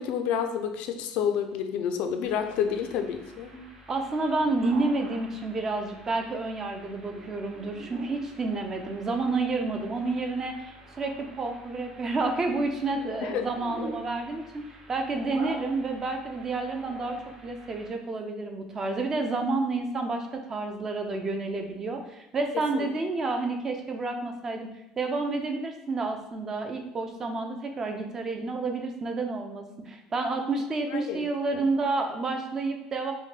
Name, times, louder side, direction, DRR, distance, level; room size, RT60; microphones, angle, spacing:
voice 1, 0.0-3.5 13.2-13.4 22.7-22.9 30.9-31.2 31.5-31.6, left 8 dB, 65° left, 7 dB, 0.4 m, -29 dB
sound 1, 2.2-17.9, right 1 dB, 40° right, 0.9 m, -46 dB
voice 2, 3.9-24.7 25.0-33.1, right 3 dB, 25° right, 4 dB, 0.4 m, -30 dB
5.3 x 2.2 x 3.2 m, 0.89 s
cardioid pair, 160°, 2 cm